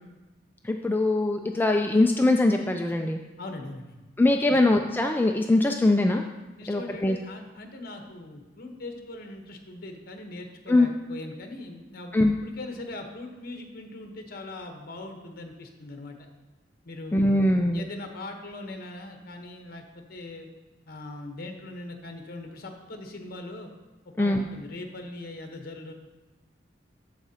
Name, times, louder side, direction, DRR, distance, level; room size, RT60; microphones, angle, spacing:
voice 1, 0.6-3.2 4.2-6.2 6.7-7.2 10.7-10.9 12.1-12.4 17.1-17.8 24.2-24.4, left 2 dB, 10° left, 4 dB, 0.3 m, -22 dB
voice 2, 3.4-3.9 4.5-4.6 6.6-12.1 12.4-16.2 16.8-20.5 20.9-23.7 24.2-25.9, left 2 dB, 55° left, 4 dB, 1.0 m, -40 dB
14.0 x 4.9 x 2.8 m, 1.1 s
head